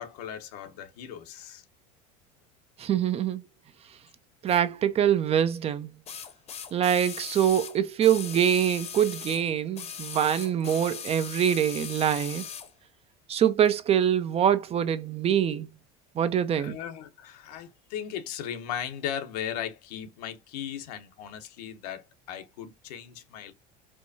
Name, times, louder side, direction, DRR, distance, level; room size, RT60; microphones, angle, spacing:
voice 1, 0.0-1.6 16.5-23.5, left 9 dB, 85° left, 0.9 m, -37 dB
voice 2, 2.8-3.4 4.4-5.9 6.7-12.4 13.3-15.7 16.2-16.8, right 9 dB, 30° right, 0.4 m, -24 dB
sound 1, 4.5-4.6 6.1-9.4 9.7-12.7 13.6-13.7, left 7 dB, 35° left, 0.7 m, -39 dB
4.6 x 2.2 x 2.6 m
supercardioid pair, 110°, 20 cm